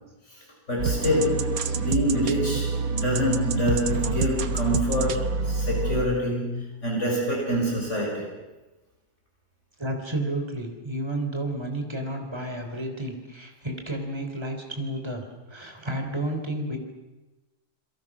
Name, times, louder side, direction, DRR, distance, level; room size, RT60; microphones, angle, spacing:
voice 1, 0.7-1.5 1.7-8.3, equal, 40° left, -2 dB, 6.7 m, -26 dB
sound 1, 0.8-6.0, right 4 dB, 60° right, 1.4 m, -27 dB
voice 2, 9.8-16.8, right 1 dB, 15° right, 4 dB, 3.5 m, -31 dB
29.0 x 22.5 x 6.1 m, 1.1 s
omnidirectional pair, 1.9 m